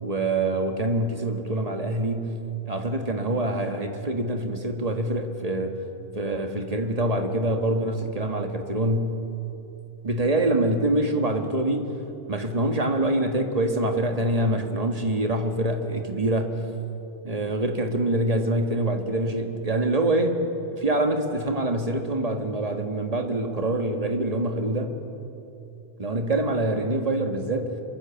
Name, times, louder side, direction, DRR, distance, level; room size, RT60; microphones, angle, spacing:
voice 1, 0.0-2.4 2.6-5.8 6.1-9.2 10.0-11.9 12.3-16.6 17.2-25.0 26.0-27.7, right 1 dB, 30° right, 4 dB, 1.9 m, -25 dB
26.0 x 23.0 x 7.2 m, 2.9 s
omnidirectional pair, 1.2 m